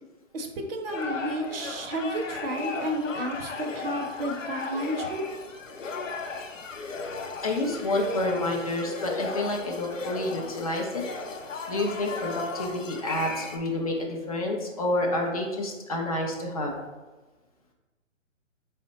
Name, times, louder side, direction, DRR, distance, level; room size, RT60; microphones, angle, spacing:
voice 1, 0.3-5.3, right 1 dB, 50° right, 3 dB, 0.6 m, -31 dB
sound 1, 0.9-13.6, left 4 dB, 75° left, 0.7 m, -36 dB
voice 2, 7.4-11.0 11.7-16.7, left 1 dB, 30° left, 0 dB, 0.4 m, -29 dB
4.4 x 2.1 x 3.8 m, 1.2 s
figure-of-eight pair, 135°, 39 cm